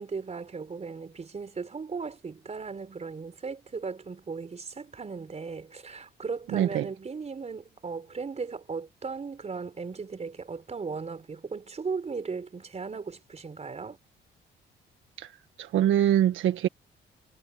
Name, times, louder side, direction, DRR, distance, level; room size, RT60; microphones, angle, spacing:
voice 1, 0.0-14.0, right 5 dB, 35° right, 4.3 m, -37 dB
voice 2, 6.5-6.9 15.2-15.3 15.6-16.7, right 11 dB, 80° right, 1.5 m, -24 dB
cardioid pair, 90°, 20 cm